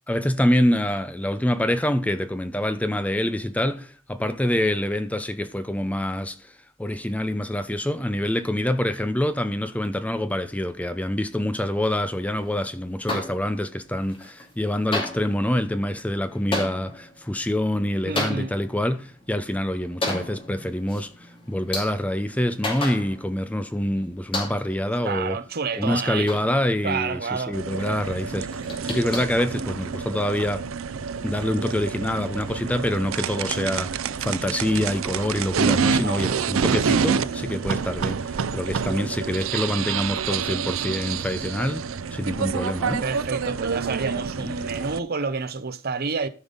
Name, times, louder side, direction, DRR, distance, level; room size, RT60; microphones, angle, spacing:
voice 1, 0.1-6.5 6.8-25.4 25.8-30.7 31.2-41.8 42.1-43.0 44.4-44.5, left 1 dB, 5° left, 0.6 m, -26 dB
sound 1, 13.1-13.8 14.1-14.6 14.9-23.5 23.8-23.9 24.3-24.9 25.4-27.1 27.4-27.5 27.7-27.8 28.2-30.1, left 2 dB, 25° left, 2.7 m, -33 dB
voice 2, 18.1-18.5 25.0-26.4 26.8-27.6 35.8-36.4 43.0-46.3, right 5 dB, 50° right, 0.8 m, -29 dB
sound 2, 27.5-45.0, right 6 dB, 80° right, 0.5 m, -28 dB
14.0 x 5.4 x 3.9 m
head